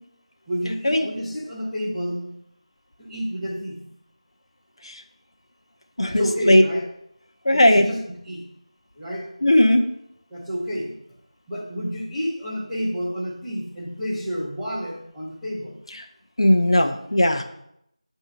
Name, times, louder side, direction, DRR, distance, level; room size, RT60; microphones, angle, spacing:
voice 1, 0.5-2.4 3.0-3.8 6.0-6.9 7.5-8.5 9.0-9.3 10.3-11.0 11.5-15.8, equal, ahead, -16 dB, 0.6 m, -30 dB
voice 2, 6.0-6.6 7.4-7.9 9.4-9.8 16.4-17.4, left 1 dB, 50° left, 4 dB, 0.6 m, -17 dB
7.7 x 2.7 x 5.7 m, 0.75 s
figure-of-eight pair, 175°, 4 cm